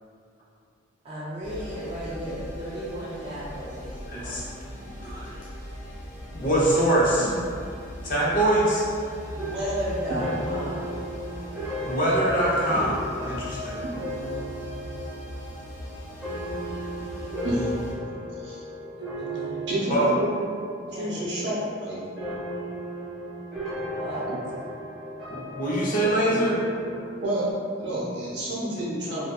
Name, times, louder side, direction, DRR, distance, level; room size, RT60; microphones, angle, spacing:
voice 1, 1.0-4.4 9.3-10.9 19.0-20.0 20.9-21.1 23.9-24.2, equal, 30° right, -10 dB, 0.3 m, -34 dB
sound 1, 1.4-17.9, equal, 80° left, 0.8 m, -40 dB
voice 2, 4.1-4.4 5.0-5.4 6.3-7.3 8.0-8.9 11.8-12.9 13.2-13.8 19.9-20.1 25.3-26.6, right 1 dB, 40° left, -6 dB, 0.5 m, -23 dB
sound 2, 9.4-20.8 21.1-21.7 22.2-27.5, equal, ahead, 0.8 m, -35 dB
voice 3, 19.7-20.3 20.9-22.0 27.2-27.5 27.8-29.3, right 1 dB, 60° right, -7 dB, 0.7 m, -29 dB
2.6 x 2.1 x 2.3 m, 2.3 s
head